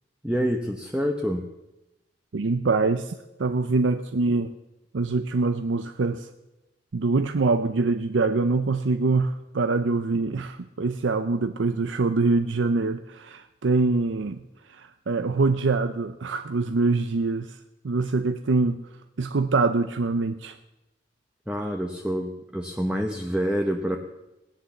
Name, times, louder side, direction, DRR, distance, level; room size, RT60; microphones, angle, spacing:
voice 1, 0.2-1.5 21.5-24.0, equal, 5° right, 2 dB, 0.9 m, -27 dB
voice 2, 2.3-4.5 4.9-6.3 6.9-14.4 14.7-17.6 17.8-18.9 19.2-20.6, right 3 dB, 85° right, 10 dB, 0.6 m, -24 dB
17.0 x 10.0 x 7.1 m, 1.0 s
head